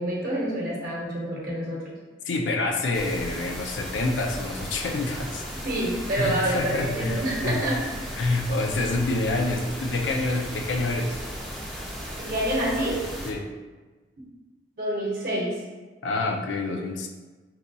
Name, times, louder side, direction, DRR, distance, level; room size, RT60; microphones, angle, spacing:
voice 1, 0.0-2.0 5.6-7.8 12.2-13.0 14.8-15.5, right 1 dB, 50° right, -5 dB, 0.8 m, -27 dB
voice 2, 2.2-5.4 6.2-7.6 8.2-11.2 13.2-13.5 16.0-17.1, left 2 dB, 80° left, 3 dB, 0.4 m, -27 dB
sound 1, 2.9-13.3, equal, ahead, 0.4 m, -36 dB
4.2 x 2.2 x 2.6 m, 1.3 s
head